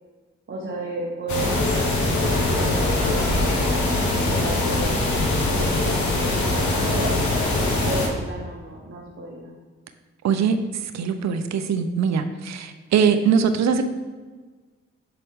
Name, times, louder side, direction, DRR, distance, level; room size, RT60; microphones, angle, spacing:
voice 1, 0.5-3.8 4.1-7.2 7.8-9.5, right 2 dB, 45° right, -3 dB, 1.3 m, -33 dB
sound 1, 1.3-8.1, left 2 dB, 75° left, 1.1 m, -22 dB
voice 2, 10.2-10.6 10.9-13.8, right 6 dB, 65° right, 9 dB, 0.6 m, -21 dB
6.6 x 4.1 x 3.7 m, 1.4 s
supercardioid pair, 40°, 29 cm